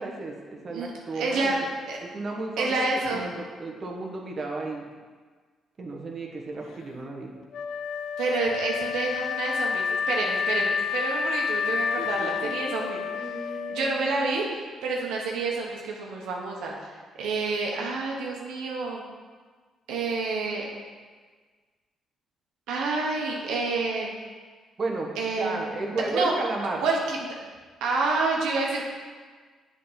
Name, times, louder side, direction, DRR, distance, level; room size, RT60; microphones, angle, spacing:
voice 1, 0.0-1.7 2.0-2.9 3.1-4.8 5.8-7.3 12.0-12.5 13.1-14.2 24.8-26.8, right 3 dB, 40° right, 0 dB, 1.1 m, -34 dB
voice 2, 0.7-1.6 1.9-2.0 2.6-3.3 8.2-16.9 17.2-19.0 19.9-20.7 22.7-24.1 25.2-25.7 26.1-26.3 26.8-27.2 27.8-28.8, right 3 dB, 85° right, -1 dB, 1.1 m, -28 dB
Wind instrument woodwind instrument, 7.5-14.5, left 6 dB, 75° left, 0.3 m, -29 dB
7.6 x 3.8 x 5.6 m, 1.5 s
cardioid pair, 90°, 0 cm